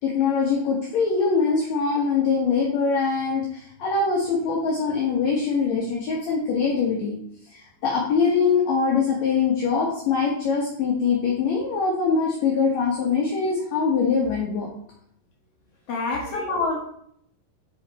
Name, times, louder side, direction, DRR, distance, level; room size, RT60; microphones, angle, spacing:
voice 1, 0.0-7.2 7.5-14.7 16.3-16.6, left 5 dB, 60° left, -3 dB, 2.0 m, -23 dB
voice 2, 15.9-16.8, left 3 dB, 80° left, -2 dB, 1.3 m, -27 dB
9.0 x 5.8 x 4.3 m, 0.67 s
omnidirectional pair, 4.8 m